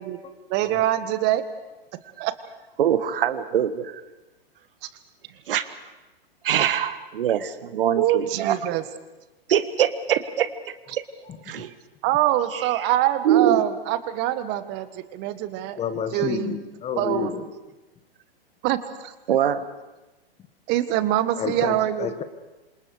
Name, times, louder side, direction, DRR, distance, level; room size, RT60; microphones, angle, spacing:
voice 1, 0.5-1.4 2.2-2.3 8.0-8.8 12.0-15.8 16.1-16.6 17.0-17.3 18.6-19.1 20.7-22.1, right 13 dB, 35° right, 11 dB, 1.7 m, -24 dB
voice 2, 2.8-4.1 5.2-5.9 6.4-8.6 9.5-11.0 11.4-11.8 12.5-12.9 13.2-13.6 19.3-19.7, right 10 dB, 65° right, 12 dB, 1.5 m, -24 dB
voice 3, 15.8-17.5 21.4-22.2, left 7 dB, 20° left, 11 dB, 1.5 m, -30 dB
28.0 x 26.5 x 4.9 m, 1.1 s
hypercardioid pair, 115°, 30 cm